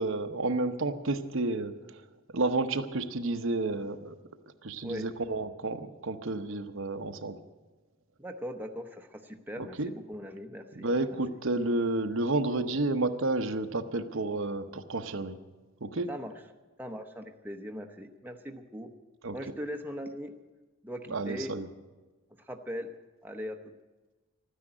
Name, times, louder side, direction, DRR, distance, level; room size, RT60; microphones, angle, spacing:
voice 1, 0.0-2.0 2.3-4.2 4.6-7.4 9.6-9.9 10.8-15.4 15.8-16.1 19.2-19.4 21.1-21.7, right 2 dB, 65° right, 8 dB, 0.9 m, -31 dB
voice 2, 8.2-10.9 16.1-16.3 16.8-18.9 19.3-20.3 20.8-21.5 22.4-22.9 23.2-23.6, equal, 10° right, 4 dB, 0.8 m, -39 dB
13.0 x 10.0 x 9.8 m, 1.2 s
head